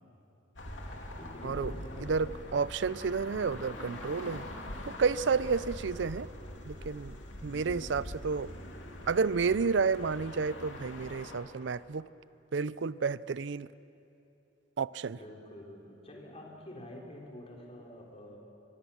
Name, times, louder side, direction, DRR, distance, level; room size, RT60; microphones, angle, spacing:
sound 1, 0.6-11.4, left 1 dB, 85° left, 2.7 m, -44 dB
voice 1, 1.2-2.4 7.5-8.0 15.1-18.4, left 1 dB, 35° left, -1 dB, 3.8 m, -47 dB
voice 2, 2.0-4.5 4.8-6.3 6.7-7.2 7.4-8.5 9.1-12.1 12.5-13.7 14.8-15.2, right 5 dB, 70° right, 18 dB, 0.5 m, -31 dB
25.5 x 22.0 x 7.1 m, 2.9 s
head